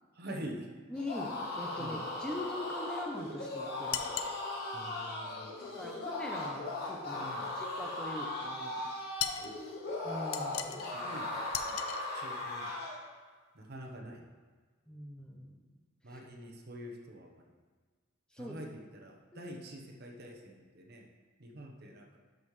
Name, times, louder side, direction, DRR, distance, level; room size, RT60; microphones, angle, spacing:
voice 1, 0.1-0.7 1.8-2.0 4.7-5.5 7.2-7.5 9.4-9.5 10.8-11.4 11.7-11.8 12.1-12.7 13.5-14.3 16.0-17.4 18.4-21.1 21.4-22.2, right 1 dB, 50° right, 1 dB, 1.0 m, -46 dB
sound 1, 0.9-13.0, left 2 dB, 50° left, 1.8 m, -38 dB
voice 2, 0.9-4.0 5.7-7.2 7.5-8.8 10.0-10.9 14.9-15.6 16.1-16.2 18.3-18.6 19.3-19.5, left 1 dB, 5° left, 0 dB, 0.7 m, -42 dB
sound 2, 3.9-4.4 9.2-9.5 10.3-10.9 11.5-12.0, left 10 dB, 85° left, 0.5 m, -36 dB
12.0 x 5.4 x 3.2 m, 1.5 s
head